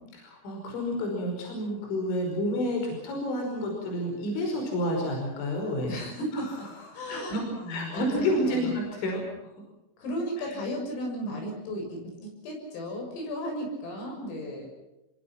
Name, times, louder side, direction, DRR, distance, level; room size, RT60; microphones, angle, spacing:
voice 1, 0.1-6.0 6.3-6.5 6.8-7.4 7.7-9.5 10.4-10.5, left 1 dB, 65° left, 1 dB, 7.7 m, -30 dB
voice 2, 5.9-6.5 6.9-8.8 10.0-14.7, equal, 80° left, 1 dB, 9.5 m, -35 dB
27.5 x 23.0 x 6.0 m, 1.0 s
omnidirectional pair, 5.8 m